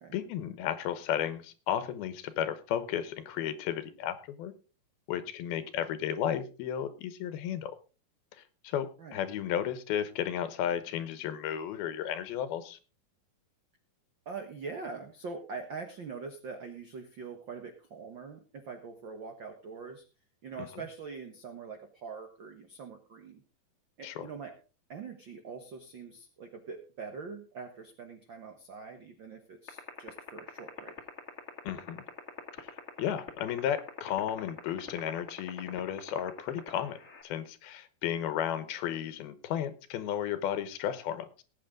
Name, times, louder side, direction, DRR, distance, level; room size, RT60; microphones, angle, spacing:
voice 1, 0.1-4.5 5.1-7.7 8.4-12.8 20.6-20.8 24.0-24.3 31.6-32.0 32.6-37.0 37.2-41.4, left 10 dB, 90° left, 13 dB, 3.0 m, -34 dB
voice 2, 14.2-20.0 20.4-23.4 24.0-24.5 24.9-31.0, right 5 dB, 90° right, 6 dB, 1.0 m, -43 dB
sound 1, 29.7-37.2, left 8 dB, 30° left, 1.5 m, -40 dB
18.5 x 8.5 x 3.7 m, 0.34 s
omnidirectional pair, 4.2 m